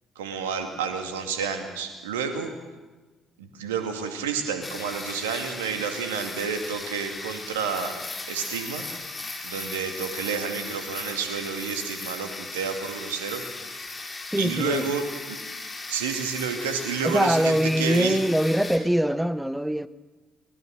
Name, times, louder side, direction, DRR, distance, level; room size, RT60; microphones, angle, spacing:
voice 1, 0.2-2.5 3.4-7.9 8.3-8.9 9.4-13.4 14.4-15.0 15.3-15.4 15.9-18.2, right 6 dB, 75° right, 2.4 m, -30 dB
sound 1, 4.6-18.8, left 3 dB, 25° left, 4.1 m, -37 dB
voice 2, 14.3-14.9 17.0-19.9, equal, 5° right, 0.9 m, -23 dB
23.0 x 20.5 x 6.6 m
figure-of-eight pair, 50°, 0 cm